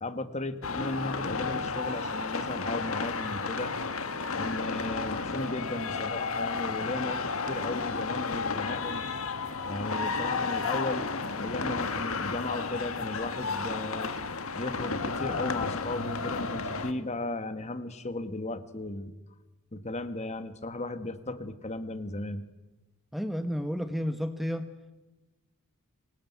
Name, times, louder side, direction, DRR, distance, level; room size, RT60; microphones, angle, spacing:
voice 1, 0.0-3.7 4.4-9.0 9.6-14.1 14.6-19.1 19.7-22.4, left 2 dB, 30° left, 11 dB, 1.5 m, -36 dB
sound 1, 0.6-16.9, left 4 dB, 70° left, 1.8 m, -32 dB
voice 2, 23.1-24.7, equal, ahead, 8 dB, 1.0 m, -31 dB
24.5 x 20.5 x 9.3 m, 1.1 s
head